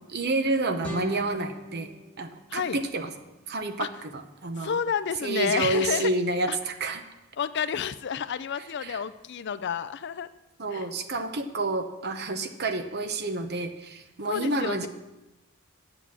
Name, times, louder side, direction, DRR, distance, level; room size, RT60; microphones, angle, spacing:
voice 1, 0.1-1.9 2.2-3.1 3.5-4.8 5.2-7.0 8.8-9.0 10.6-14.9, right 2 dB, 50° right, 8 dB, 1.0 m, -29 dB
sound 1, 0.8-3.8, left 1 dB, 5° left, 1.7 m, -42 dB
voice 2, 2.5-2.8 3.8-3.9 4.6-6.1 6.5-6.6 7.4-10.3 10.7-10.9 14.3-14.9, left 7 dB, 50° left, 15 dB, 0.4 m, -30 dB
9.6 x 8.1 x 7.4 m, 1.0 s
head